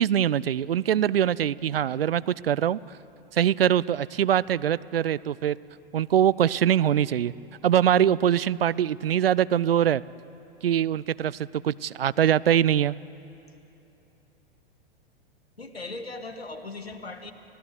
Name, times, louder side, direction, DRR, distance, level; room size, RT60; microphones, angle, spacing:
voice 1, 0.0-2.8 3.3-5.6 5.9-7.3 7.6-10.0 10.6-12.9, right 10 dB, 70° right, 19 dB, 0.6 m, -23 dB
voice 2, 15.6-17.3, left 3 dB, 85° left, 8 dB, 2.1 m, -38 dB
30.0 x 17.0 x 9.7 m, 2.9 s
figure-of-eight pair, 100°, 30 cm